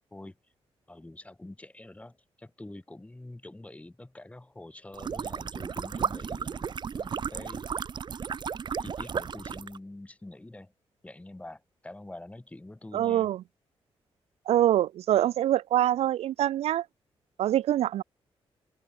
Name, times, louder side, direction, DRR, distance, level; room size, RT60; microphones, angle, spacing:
voice 1, 0.9-7.7 8.8-10.7 11.0-13.3, left 2 dB, 15° left, 6.2 m, -46 dB
sound 1, 4.9-9.8, right 6 dB, 45° right, 1.0 m, -34 dB
voice 2, 12.9-13.4 14.5-16.9 17.4-18.0, right 12 dB, 90° right, 0.5 m, -24 dB
open air
cardioid pair, 105°, 10 cm